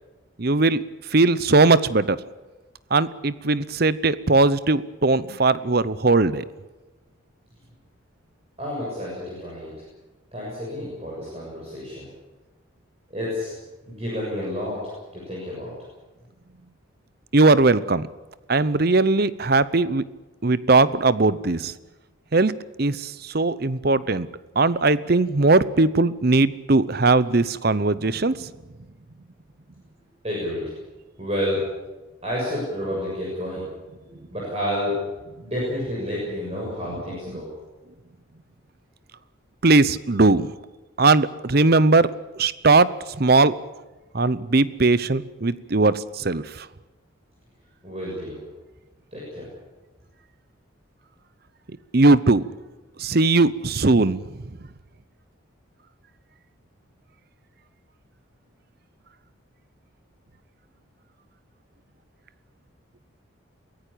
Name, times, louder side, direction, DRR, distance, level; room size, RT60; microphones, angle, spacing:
voice 1, 0.4-0.8 1.1-2.2 2.9-6.4 17.3-18.1 18.5-20.0 20.4-21.7 22.3-22.5 22.8-24.3 24.5-28.5 39.6-40.5 41.0-42.1 42.4-42.9 43.2-43.5 44.1-46.7 51.9-52.4 53.0-54.4, right 3 dB, 50° right, 17 dB, 0.8 m, -19 dB
voice 2, 8.6-9.7 10.3-12.1 13.1-13.5 13.9-14.8 15.1-15.7 30.2-30.7 31.2-31.6 32.2-33.7 34.3-35.0 35.4-37.5 47.8-48.4 49.1-49.5, left 1 dB, 30° right, -5 dB, 7.0 m, -29 dB
23.0 x 16.5 x 8.6 m, 1.2 s
head